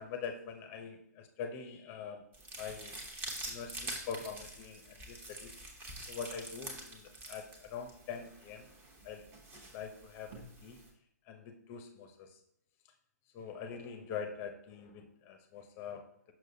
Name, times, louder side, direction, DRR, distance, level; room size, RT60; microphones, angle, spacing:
voice 1, 0.0-2.2 2.6-3.0 3.5-5.5 6.1-8.7 9.0-9.2 9.7-10.8 11.3-12.3 13.3-16.1, left 6 dB, 25° left, 6 dB, 0.7 m, -44 dB
sound 1, 2.3-10.9, right 1 dB, 20° right, 1.0 m, -46 dB
6.3 x 6.0 x 2.7 m, 0.73 s
figure-of-eight pair, 130°, 10 cm